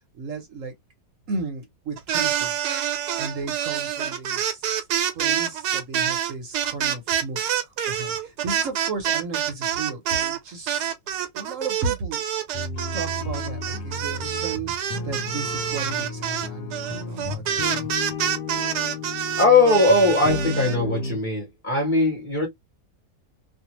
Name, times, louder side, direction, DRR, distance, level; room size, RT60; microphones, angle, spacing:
voice 1, 0.1-0.7 1.3-4.7 5.1-10.9 11.3-12.2 12.9-17.9, right 4 dB, 60° right, 1.0 m, -34 dB
sound 1, 2.0-10.4 10.7-20.8, right 9 dB, 80° right, 1.2 m, -27 dB
sound 2, 12.5-21.2, left 3 dB, 85° left, 1.2 m, -33 dB
voice 2, 19.4-22.5, left 2 dB, 35° left, 1.1 m, -19 dB
2.7 x 2.4 x 2.8 m
omnidirectional pair, 1.7 m